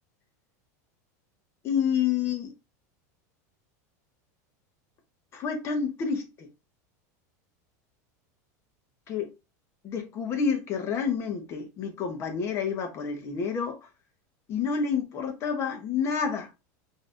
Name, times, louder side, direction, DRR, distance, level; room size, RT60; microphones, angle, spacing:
voice 1, 1.6-2.5 5.3-6.5 9.1-9.3 9.8-13.8 14.5-16.5, left 6 dB, 30° left, 0.9 m, -29 dB
5.2 x 2.7 x 2.5 m
supercardioid pair, 160°, 9 cm